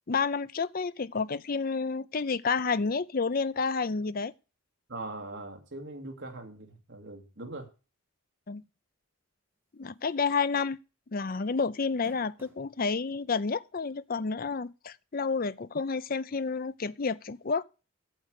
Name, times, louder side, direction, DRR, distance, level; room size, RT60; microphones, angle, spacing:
voice 1, 0.1-4.3 8.5-8.6 9.7-10.8 11.1-17.6, left 4 dB, 45° left, 0.5 m, -30 dB
voice 2, 4.9-7.7, right 2 dB, 60° right, 2.3 m, -41 dB
sound 1, 10.1-10.3 10.7-10.8 11.8-12.7 13.5-13.6 15.1-15.2, equal, 10° right, 2.1 m, -54 dB
8.8 x 7.7 x 6.5 m
head